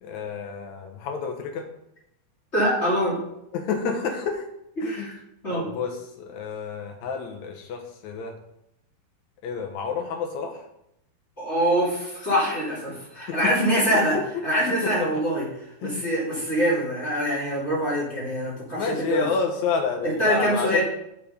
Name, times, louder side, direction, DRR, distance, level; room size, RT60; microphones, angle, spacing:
voice 1, 0.0-1.7 3.5-4.4 4.8-5.1 5.5-8.3 9.4-10.7 13.3-14.2 14.8-15.1 15.8-16.1 18.7-20.8, left 5 dB, 75° left, 3 dB, 1.7 m, -29 dB
voice 2, 2.5-3.2 4.8-5.2 5.4-5.6 11.4-14.2 14.4-15.5 15.8-19.3 20.0-20.8, equal, 20° left, -7 dB, 2.6 m, -24 dB
7.3 x 6.7 x 5.2 m, 0.80 s
omnidirectional pair, 4.7 m